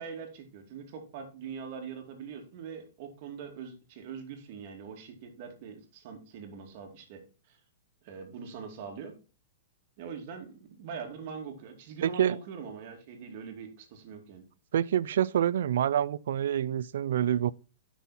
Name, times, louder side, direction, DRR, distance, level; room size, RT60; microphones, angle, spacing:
voice 1, 0.0-7.2 7.5-7.6 8.0-9.1 10.0-14.4, right 6 dB, 50° right, 2.4 m, -42 dB
voice 2, 12.0-12.4 14.7-17.5, right 10 dB, 75° right, 0.4 m, -27 dB
9.3 x 6.2 x 4.2 m
hypercardioid pair, 145°, 0 cm